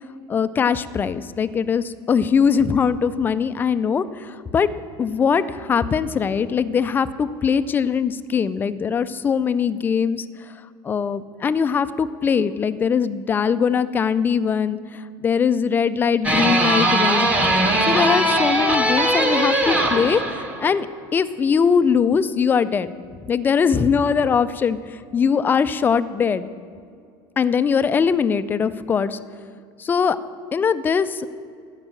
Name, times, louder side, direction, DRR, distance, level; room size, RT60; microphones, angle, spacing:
voice 1, 0.3-4.7 5.0-10.5 10.8-17.5 17.9-20.9 21.1-22.9 23.3-26.5 27.4-29.2 29.8-30.2 30.5-31.3, left 6 dB, 20° left, 14 dB, 0.3 m, -21 dB
sound 1, 16.2-20.7, right 1 dB, 15° right, 1.0 m, -20 dB
12.5 x 5.4 x 8.8 m, 2.2 s
cardioid pair, 150°, 11 cm